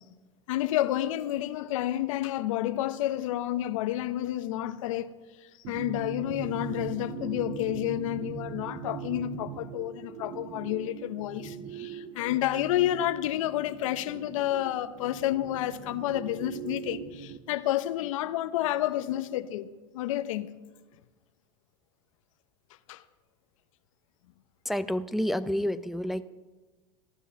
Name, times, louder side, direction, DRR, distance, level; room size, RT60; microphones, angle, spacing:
voice 1, 0.5-5.1 5.7-19.7 19.9-20.5 22.9-23.0, left 13 dB, 80° left, 0.8 m, -30 dB
sound 1, 5.6-17.4, right 8 dB, 50° right, 0.8 m, -41 dB
voice 2, 24.7-26.2, equal, ahead, 0.5 m, -29 dB
15.0 x 9.8 x 7.0 m
supercardioid pair, 105°, 17 cm